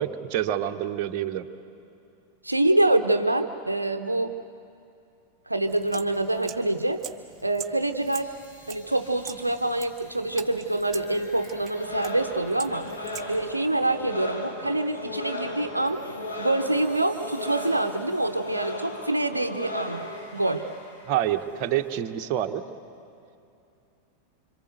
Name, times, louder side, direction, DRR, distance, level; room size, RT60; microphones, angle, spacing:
voice 1, 0.0-1.4 21.1-22.6, right 11 dB, 40° right, 6 dB, 1.1 m, -27 dB
voice 2, 2.4-4.3 5.5-7.0 7.4-8.3 8.7-12.9 13.3-16.0 16.4-20.1 20.3-20.6, right 2 dB, 85° right, 7 dB, 0.7 m, -25 dB
sound 1, 5.7-13.5, right 8 dB, 25° right, 1.6 m, -44 dB
sound 2, 8.0-22.0, left 1 dB, 55° left, 7.0 m, -49 dB
sound 3, 11.7-20.6, left 1 dB, 80° left, 3.9 m, -36 dB
27.0 x 26.0 x 8.1 m, 2.6 s
figure-of-eight pair, 90°, 0 cm